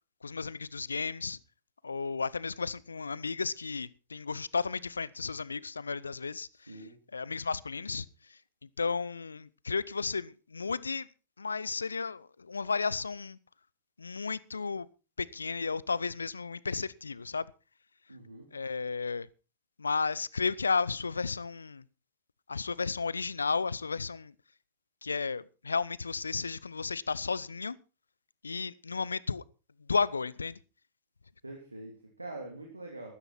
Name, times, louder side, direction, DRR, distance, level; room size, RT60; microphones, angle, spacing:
voice 1, 0.2-1.4 1.8-6.5 7.1-8.0 8.8-11.1 11.4-13.4 14.0-14.9 15.2-17.5 18.5-19.3 19.8-21.8 22.5-24.3 25.0-27.8 28.4-29.4 29.9-30.6, left 4 dB, 75° left, 0.6 m, -33 dB
voice 2, 18.1-18.5 31.4-33.1, right 2 dB, 85° right, 3.0 m, -44 dB
14.0 x 13.5 x 4.3 m
figure-of-eight pair, 90°, 0 cm